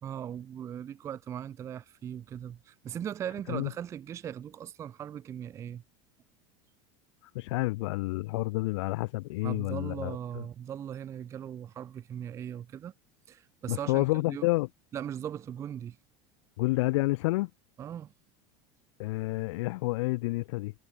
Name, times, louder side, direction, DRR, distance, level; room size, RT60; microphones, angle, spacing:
voice 1, 0.0-5.8 9.4-12.9 13.3-14.5 14.9-16.0 17.8-18.1, right 9 dB, 20° right, 0.5 m, -39 dB
voice 2, 7.3-10.4 13.7-14.7 16.6-17.5 19.0-20.7, left 21 dB, 75° left, 0.4 m, -29 dB
supercardioid pair, 165°, 15 cm